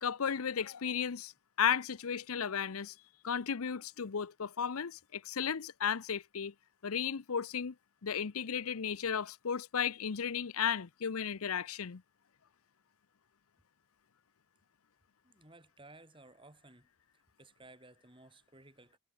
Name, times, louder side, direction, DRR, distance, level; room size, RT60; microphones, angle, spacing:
voice 1, 0.0-1.3 1.6-2.9 3.2-6.5 6.8-7.7 8.0-12.0, left 7 dB, 80° left, 0.7 m, -34 dB
voice 2, 15.2-16.9 17.1-19.0, right 2 dB, 25° right, 4.6 m, -57 dB
head